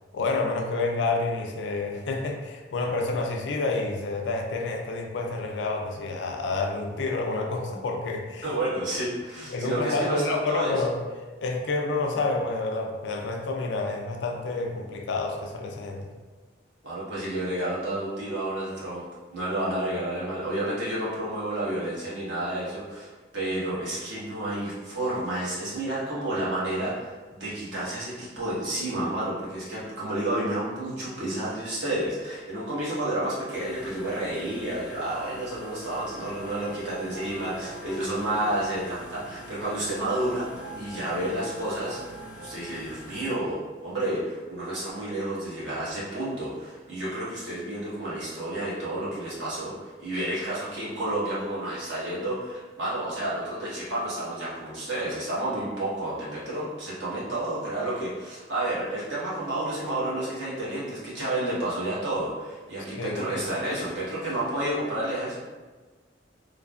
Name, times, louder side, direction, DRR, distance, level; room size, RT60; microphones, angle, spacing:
voice 1, 0.1-8.5 9.5-11.0 11.4-16.1 62.9-63.2, left 3 dB, 80° left, 2 dB, 0.4 m, -29 dB
voice 2, 8.4-10.8 16.8-19.0 19.3-40.5 40.7-42.0 42.4-65.4, right 1 dB, 85° right, -9 dB, 1.1 m, -30 dB
sound 1, 33.5-43.3, left 2 dB, 5° right, 0.3 m, -47 dB
sound 2, 36.1-42.8, right 3 dB, 45° right, 0.6 m, -43 dB
3.2 x 2.0 x 2.4 m, 1.3 s
head